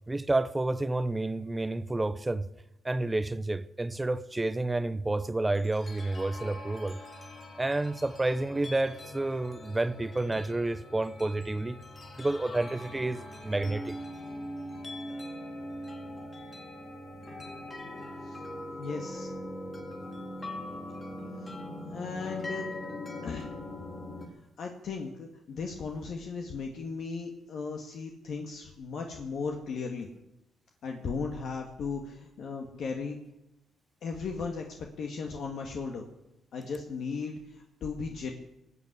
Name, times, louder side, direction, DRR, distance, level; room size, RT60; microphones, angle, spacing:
voice 1, 0.1-2.5 2.8-7.0 7.6-11.8 12.2-14.0, right 2 dB, 15° right, 0.7 m, -30 dB
sound 1, 5.5-24.3, left 1 dB, 30° left, 4.6 m, -41 dB
voice 2, 18.8-19.3 21.4-21.5 21.9-22.7 23.2-23.5 24.6-30.1 30.8-33.2 34.0-36.1 36.5-38.3, left 4 dB, 65° left, 1.9 m, -36 dB
19.5 x 8.4 x 8.2 m
cardioid pair, 90°, 0 cm